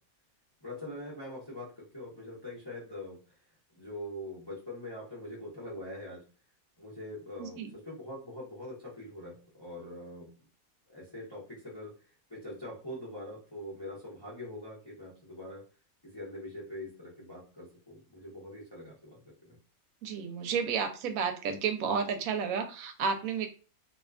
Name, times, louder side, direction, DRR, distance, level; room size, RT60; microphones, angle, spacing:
voice 1, 0.6-3.4 3.8-6.3 6.8-10.3 10.9-11.9 12.3-15.6 16.0-19.6, left 1 dB, 25° left, -6 dB, 0.6 m, -43 dB
voice 2, 20.0-23.5, right 6 dB, 75° right, 6 dB, 1.0 m, -31 dB
2.8 x 2.2 x 2.4 m, 0.36 s
omnidirectional pair, 1.5 m